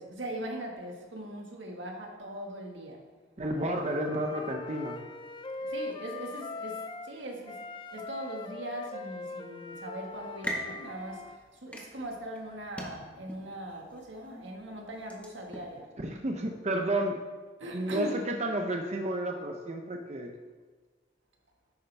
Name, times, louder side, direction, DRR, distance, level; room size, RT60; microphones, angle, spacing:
voice 1, 0.0-3.0 5.7-7.6 7.9-15.9 17.6-18.2, right 1 dB, 85° right, 1 dB, 1.7 m, -40 dB
voice 2, 3.4-5.0 16.0-17.2 17.7-20.3, right 1 dB, 40° right, 3 dB, 0.7 m, -31 dB
Wind instrument woodwind instrument, 3.5-7.1 7.4-11.4, left 3 dB, 25° left, 0.4 m, -41 dB
sound 1, 10.1-15.8, equal, 5° left, 1.2 m, -43 dB
10.5 x 8.4 x 3.4 m, 1.3 s
head